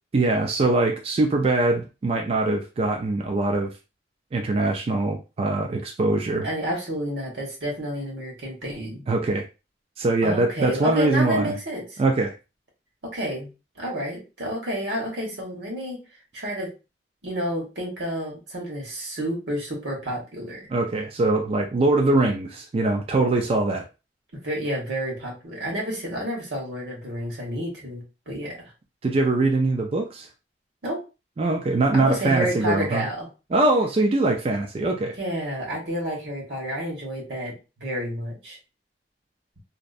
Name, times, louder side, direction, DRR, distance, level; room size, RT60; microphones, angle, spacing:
voice 1, 0.1-3.7 4.3-6.5 9.1-9.5 10.0-11.6 12.0-12.3 20.7-23.8 29.0-30.3 31.4-33.1 33.5-35.2, right 2 dB, 35° right, 0.3 m, -22 dB
voice 2, 6.4-9.0 10.2-12.0 13.0-13.5 13.8-16.0 16.3-16.7 17.2-20.7 24.4-28.6 30.8-31.0 31.9-33.3 35.2-38.6, equal, 85° right, 1.1 m, -30 dB
2.6 x 2.0 x 2.4 m
head